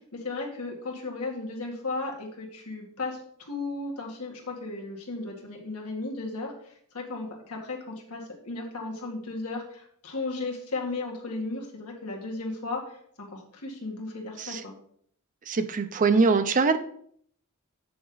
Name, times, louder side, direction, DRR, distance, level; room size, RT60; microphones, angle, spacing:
voice 1, 0.1-14.7, left 3 dB, 85° left, 0 dB, 2.0 m, -35 dB
voice 2, 15.5-16.8, right 4 dB, 35° right, 10 dB, 0.5 m, -23 dB
7.8 x 6.8 x 4.0 m, 0.63 s
head